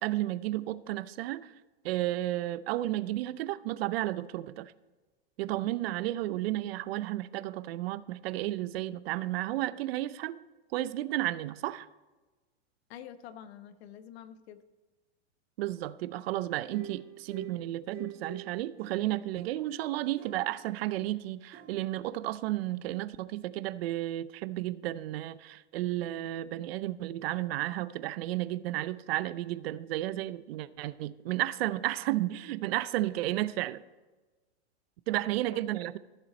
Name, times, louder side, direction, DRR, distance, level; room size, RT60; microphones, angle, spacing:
voice 1, 0.0-1.5 1.8-4.7 5.4-10.4 10.7-11.9 15.6-33.8 35.1-36.0, right 15 dB, 60° right, 16 dB, 0.6 m, -32 dB
voice 2, 12.9-14.6 35.1-35.6, left 10 dB, 65° left, 11 dB, 1.0 m, -48 dB
sound 1, 16.7-19.7 20.2-21.0 21.5-21.8, right 6 dB, 25° right, 2.0 m, -47 dB
14.5 x 6.9 x 4.2 m, 1.2 s
supercardioid pair, 140°, 35 cm